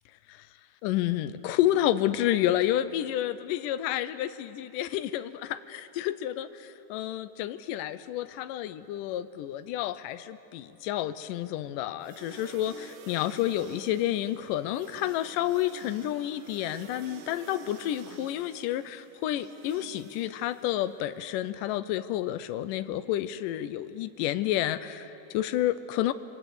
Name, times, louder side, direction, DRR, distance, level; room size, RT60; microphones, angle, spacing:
voice 1, 0.8-26.1, left 13 dB, 80° left, 12 dB, 1.9 m, -30 dB
sound 1, 12.0-21.1, right 7 dB, 65° right, 2.5 m, -49 dB
28.5 x 23.0 x 8.2 m, 3.0 s
omnidirectional pair, 4.6 m